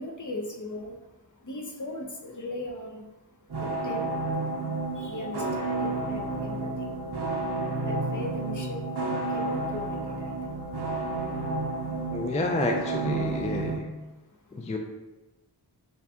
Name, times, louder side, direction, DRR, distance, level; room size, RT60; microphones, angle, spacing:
voice 1, 0.0-12.3 14.3-14.5, left 1 dB, 45° left, 0 dB, 0.7 m, -40 dB
sound 1, 3.5-13.8, right 2 dB, 65° right, 0.7 m, -31 dB
voice 2, 12.1-13.9 14.5-14.8, left 2 dB, 20° left, 2 dB, 0.3 m, -29 dB
6.5 x 2.3 x 2.8 m, 1.1 s
wide cardioid pair, 45°, 42 cm